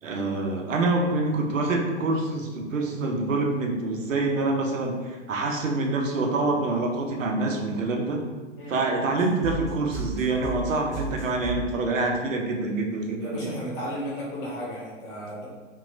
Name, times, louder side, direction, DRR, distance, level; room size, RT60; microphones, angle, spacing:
voice 1, 0.0-8.2 8.7-13.6, right 2 dB, 85° right, 1 dB, 0.6 m, -26 dB
sound 1, 9.2-11.7, right 4 dB, ahead, 0.3 m, -33 dB
voice 2, 13.2-15.5, equal, 30° left, -6 dB, 0.9 m, -34 dB
2.8 x 2.2 x 2.5 m, 1.3 s
hypercardioid pair, 110°, 38 cm